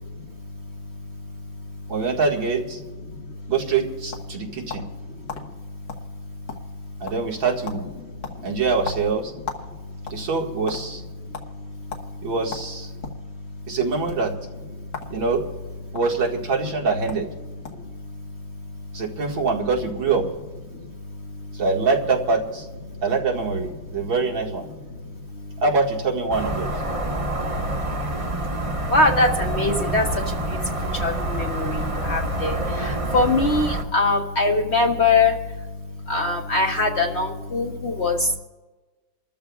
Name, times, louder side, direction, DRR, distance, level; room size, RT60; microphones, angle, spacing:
voice 1, 0.0-1.9 3.0-3.5 4.3-7.1 8.0-8.6 9.7-10.3 10.9-12.3 12.9-13.8 14.7-15.2 15.9-16.0 17.7-19.0 20.7-21.6 22.8-23.0 23.8-24.0 24.7-25.6 27.0-38.4, left 3 dB, 45° left, 2 dB, 1.0 m, -26 dB
voice 2, 1.9-2.8 3.5-4.8 7.0-7.9 8.4-9.3 10.1-11.0 12.2-12.9 13.7-14.3 15.1-15.4 15.9-17.3 18.9-20.3 21.6-22.7 23.0-24.7 25.6-26.7, right 4 dB, 90° right, -1 dB, 2.7 m, -24 dB
sound 1, 4.1-5.0 5.3-5.4 5.9-6.1 6.3-6.8 7.1-7.4 7.7-7.8 8.2-9.7 10.0-10.8 11.3-11.5 11.9-12.1 12.5-13.2 14.0-14.2 14.9-15.1 15.4-16.0 16.8-16.9 17.1-17.3 17.6-17.9, left 5 dB, 70° left, 2.1 m, -35 dB
sound 2, 26.3-33.8, right 2 dB, 20° right, 1.0 m, -27 dB
29.5 x 13.5 x 2.4 m, 1.2 s
omnidirectional pair, 2.0 m